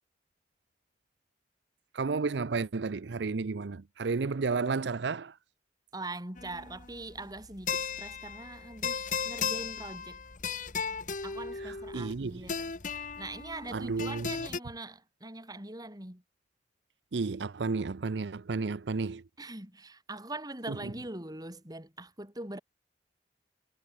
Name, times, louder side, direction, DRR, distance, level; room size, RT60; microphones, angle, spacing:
voice 1, 1.9-5.4 11.6-12.4 13.7-14.3 17.1-19.2 20.7-20.8, right 4 dB, 75° right, 0.6 m, -32 dB
voice 2, 5.9-10.2 11.2-16.2 19.4-22.6, right 2 dB, 20° right, 4.0 m, -42 dB
sound 1, 6.4-14.6, left 6 dB, 45° left, 1.4 m, -36 dB
head